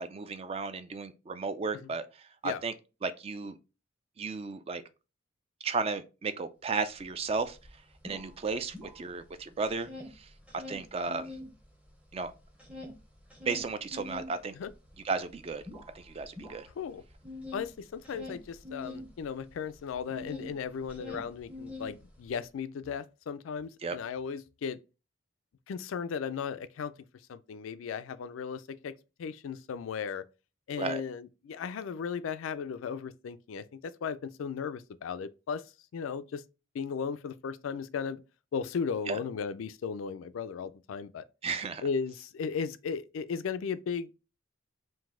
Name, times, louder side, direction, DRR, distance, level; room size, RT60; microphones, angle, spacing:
voice 1, 0.0-2.7 3.0-3.6 4.2-4.8 5.6-7.6 8.0-11.3 12.1-12.3 13.4-14.6 15.0-15.6 15.9-16.7 23.8-24.0 30.8-31.0 39.1-39.2 41.4-41.8, right 4 dB, 30° right, 0.3 m, -34 dB
sound 1, 7.0-7.1 7.4-9.4 9.6-11.5 11.9-20.5 20.8-22.3, left 2 dB, 5° right, 0.7 m, -44 dB
voice 2, 17.5-24.8 25.7-26.9 27.3-30.2 30.7-35.6 35.9-36.4 36.7-38.2 38.5-41.3 41.8-44.2, left 6 dB, 80° left, 0.3 m, -36 dB
3.9 x 2.6 x 3.6 m
head